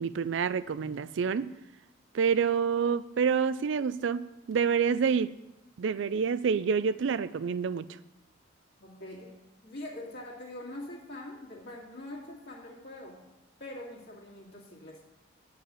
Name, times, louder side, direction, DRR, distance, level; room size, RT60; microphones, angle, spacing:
voice 1, 0.0-1.5 2.1-5.3 5.8-7.9, right 6 dB, 60° right, 16 dB, 0.4 m, -28 dB
voice 2, 8.8-9.3 9.6-13.2 13.6-15.0, left 1 dB, 55° left, -4 dB, 2.2 m, -43 dB
9.9 x 4.8 x 7.5 m, 0.98 s
head